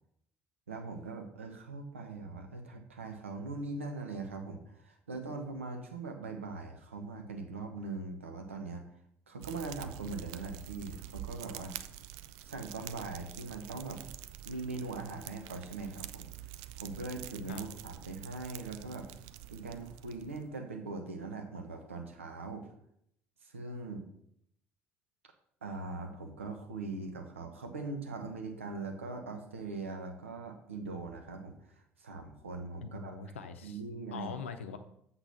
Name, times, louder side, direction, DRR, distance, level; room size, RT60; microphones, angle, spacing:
voice 1, 0.7-8.9 9.3-11.8 12.4-14.0 14.4-16.3 16.8-19.1 19.5-22.7 23.4-24.1 25.6-33.1 33.6-34.3, right 3 dB, 80° right, 4 dB, 0.9 m, -41 dB
Fire, 9.4-20.6, right 13 dB, 60° right, 0.4 m, -47 dB
voice 2, 32.8-33.8 34.1-34.8, left 6 dB, 75° left, 8 dB, 0.6 m, -42 dB
8.0 x 3.9 x 5.7 m, 0.72 s
figure-of-eight pair, 55°, 7 cm